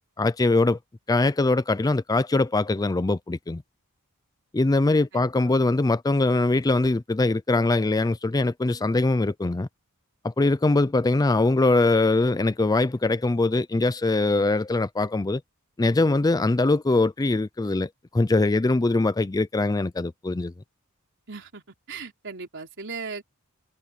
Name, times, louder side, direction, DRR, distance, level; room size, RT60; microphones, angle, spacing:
voice 1, 0.2-0.8 1.1-3.6 4.5-9.7 10.2-15.4 15.8-20.5, left 2 dB, 15° left, 0.4 m, -22 dB
voice 2, 5.1-5.5 21.3-21.6 21.9-23.2, right 4 dB, 55° right, 3.9 m, -37 dB
head